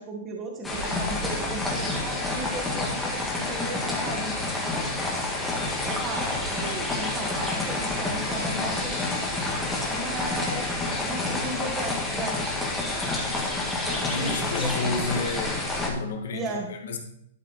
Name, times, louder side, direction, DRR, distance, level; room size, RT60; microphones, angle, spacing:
voice 1, 0.0-4.3 5.8-9.2 9.9-12.4 14.2-14.7 16.3-16.7, right 2 dB, 20° right, 1 dB, 1.6 m, -35 dB
sound 1, 0.6-15.9, left 2 dB, 5° left, 1.9 m, -28 dB
voice 2, 13.9-15.5 15.8-17.0, left 3 dB, 75° left, 3 dB, 2.0 m, -31 dB
12.0 x 5.4 x 4.0 m, 0.70 s
hypercardioid pair, 150°, 0 cm